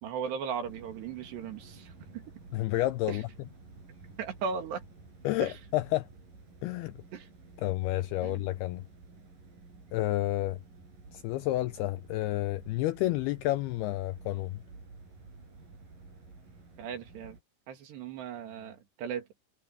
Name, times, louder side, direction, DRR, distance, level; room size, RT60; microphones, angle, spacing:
voice 1, 0.0-2.2 3.1-3.2 4.2-4.8 5.4-5.5 7.1-7.3 8.2-8.4 16.8-17.4 17.7-19.3, right 6 dB, 70° right, 4.4 m, -37 dB
sound 1, 0.6-17.4, right 3 dB, 50° right, 9.8 m, -52 dB
voice 2, 2.5-3.3 5.2-6.1 6.6-6.9 7.6-8.8 9.9-10.6 11.1-14.6, left 16 dB, 90° left, 2.2 m, -30 dB
omnidirectional pair, 5.1 m